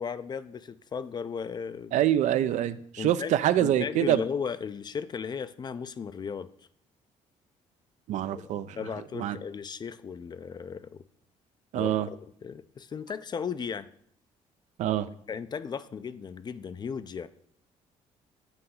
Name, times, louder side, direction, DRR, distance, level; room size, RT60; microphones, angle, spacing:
voice 1, 0.0-2.0 3.0-6.5 8.3-8.5 8.8-11.0 11.7-13.9 15.3-17.3, left 6 dB, 35° left, 14 dB, 0.4 m, -36 dB
voice 2, 1.9-4.2 8.1-8.8 9.2-9.4 11.7-12.1 14.8-15.1, right 12 dB, 65° right, 14 dB, 0.4 m, -25 dB
7.8 x 2.7 x 5.5 m, 0.65 s
supercardioid pair, 75°, 13 cm